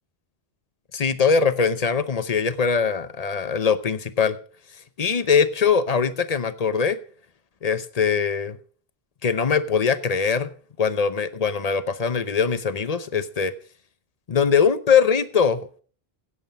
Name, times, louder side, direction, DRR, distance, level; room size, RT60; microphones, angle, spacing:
voice 1, 0.9-4.4 5.0-7.0 7.6-8.6 9.2-10.5 10.8-13.5 14.3-15.8, left 6 dB, 40° left, 14 dB, 0.9 m, -22 dB
16.5 x 7.8 x 5.3 m, 0.42 s
omnidirectional pair, 1.0 m